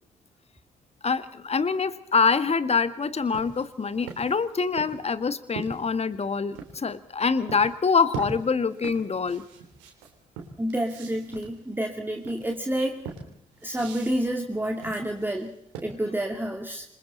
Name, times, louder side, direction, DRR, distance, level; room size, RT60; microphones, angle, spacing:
voice 1, 1.0-9.4, left 5 dB, 30° left, 13 dB, 1.7 m, -25 dB
sound 1, 3.2-6.8 7.5-7.7 8.1-16.2, right 5 dB, 70° right, 3.7 m, -41 dB
voice 2, 10.6-13.1 13.6-15.5 15.8-16.9, right 1 dB, 10° right, 2 dB, 2.5 m, -29 dB
27.0 x 23.0 x 4.1 m, 0.76 s
figure-of-eight pair, 45°, 20 cm